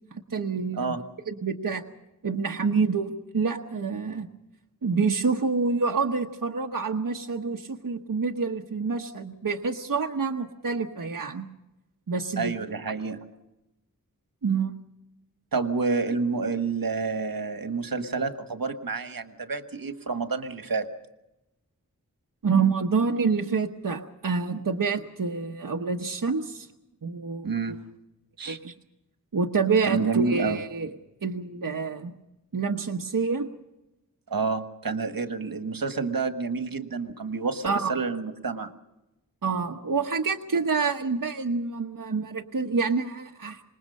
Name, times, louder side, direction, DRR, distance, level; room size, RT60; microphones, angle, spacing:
voice 1, 0.1-0.9 1.3-1.8 2.2-4.3 4.8-11.5 12.1-12.5 14.4-14.8 22.4-26.7 27.0-27.5 28.5-28.7 29.3-30.9 31.2-32.1 32.5-33.5 37.6-37.9 39.4-43.6, right 5 dB, 75° right, 2 dB, 1.2 m, -27 dB
voice 2, 12.4-13.2 15.5-20.9 27.4-27.8 28.4-28.6 29.9-30.6 34.3-38.7, right 4 dB, 90° right, 7 dB, 1.5 m, -29 dB
26.0 x 21.5 x 5.5 m, 0.95 s
wide cardioid pair, 75°, 34 cm